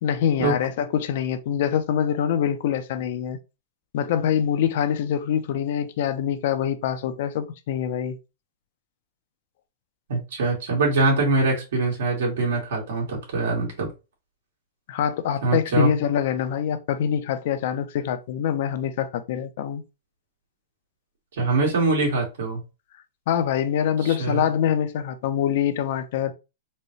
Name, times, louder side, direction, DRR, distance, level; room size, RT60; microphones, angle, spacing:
voice 1, 0.0-3.4 3.9-8.2 14.9-19.8 23.3-26.3, left 9 dB, 60° left, 0.6 m, -24 dB
voice 2, 10.1-13.9 15.4-15.9 21.4-22.6 24.0-24.4, right 3 dB, 80° right, 2.1 m, -23 dB
4.2 x 2.3 x 3.1 m
supercardioid pair, 145°, 0 cm